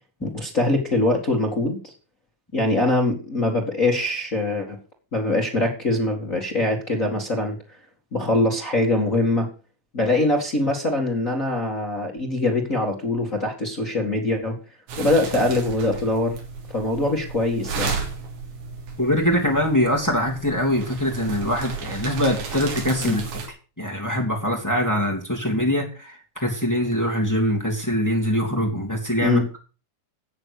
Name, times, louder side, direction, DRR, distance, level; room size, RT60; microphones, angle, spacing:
voice 1, 0.2-1.9 2.5-4.8 5.1-7.6 8.1-9.5 9.9-14.6 15.0-16.4 16.7-17.9 23.0-23.2 29.2-29.5, left 2 dB, 60° left, 0 dB, 0.8 m, -23 dB
sound 1, 14.9-23.5, right 4 dB, 65° right, 5.3 m, -33 dB
voice 2, 19.0-23.2 23.8-29.6, equal, 5° left, 1 dB, 1.4 m, -23 dB
13.5 x 8.2 x 6.7 m, 0.35 s
omnidirectional pair, 5.5 m